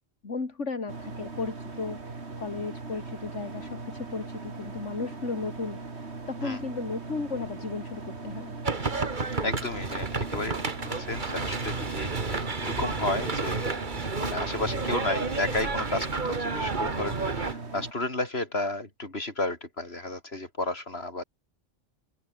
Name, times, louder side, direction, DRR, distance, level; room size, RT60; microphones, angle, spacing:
voice 1, 0.2-8.5, left 4 dB, 70° left, 3.0 m, -35 dB
sound 1, 0.9-17.9, right 3 dB, 60° right, 2.9 m, -40 dB
sound 2, 8.6-17.5, right 4 dB, 40° right, 1.9 m, -31 dB
voice 2, 9.4-13.7 14.2-21.2, left 2 dB, 55° left, 5.0 m, -33 dB
open air
omnidirectional pair, 1.3 m